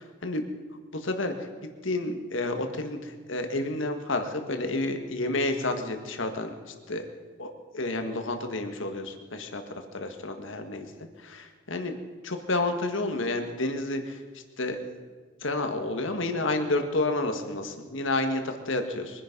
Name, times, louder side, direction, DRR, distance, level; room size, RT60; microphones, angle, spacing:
voice 1, 1.8-3.0 3.3-6.5 6.9-7.0 7.4-9.0 9.3-9.6 9.9-10.9 11.7-12.0 12.2-14.0 14.6-14.8 15.4-19.1, left 2 dB, 65° left, 6 dB, 1.7 m, -29 dB
23.5 x 10.5 x 5.3 m, 1.5 s
head